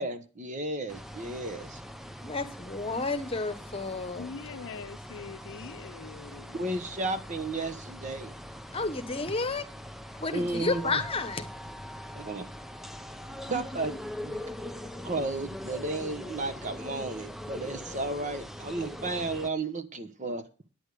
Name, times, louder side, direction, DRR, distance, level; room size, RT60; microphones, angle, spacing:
voice 1, 0.0-1.8 6.5-8.3 10.3-11.0 12.1-12.5 13.5-14.0 14.2-14.4 15.0-20.5, right 2 dB, 35° right, 1.0 m, -33 dB
sound 1, 0.9-19.5, equal, ahead, 0.5 m, -42 dB
voice 2, 2.2-4.3 8.7-9.6 10.2-11.5, left 3 dB, 25° left, 1.1 m, -31 dB
voice 3, 4.2-6.6, left 5 dB, 60° left, 0.5 m, -43 dB
9.4 x 9.0 x 4.9 m
head